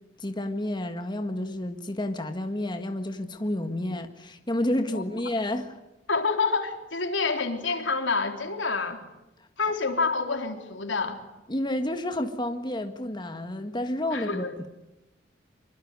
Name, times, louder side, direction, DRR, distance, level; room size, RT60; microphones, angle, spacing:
voice 1, 0.2-5.8 11.5-14.7, left 1 dB, 25° left, 6 dB, 1.7 m, -30 dB
voice 2, 6.1-9.0 9.6-11.2 14.1-14.5, left 4 dB, 85° left, 5 dB, 3.8 m, -28 dB
25.5 x 24.0 x 9.7 m, 0.97 s
head